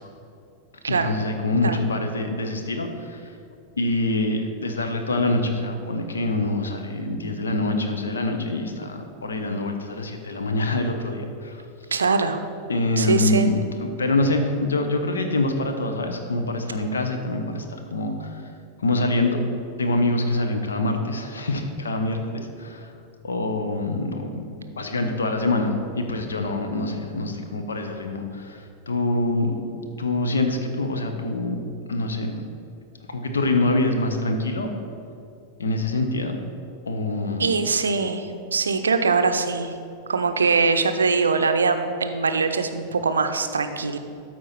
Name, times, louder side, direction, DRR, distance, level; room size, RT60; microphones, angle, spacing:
voice 1, 0.9-3.2 3.8-11.6 12.7-18.4 18.8-19.4 19.8-22.9 23.2-24.4 24.8-29.5 30.0-31.6 31.9-32.3 33.1-34.7 35.6-36.4 36.9-37.5, left 2 dB, 70° left, 5 dB, 0.8 m, -25 dB
voice 2, 11.9-12.4 13.0-13.5 37.4-39.7 40.1-44.0, right 4 dB, 70° right, 8 dB, 0.5 m, -22 dB
12.5 x 4.5 x 4.2 m, 2.5 s
figure-of-eight pair, 90°, 0 cm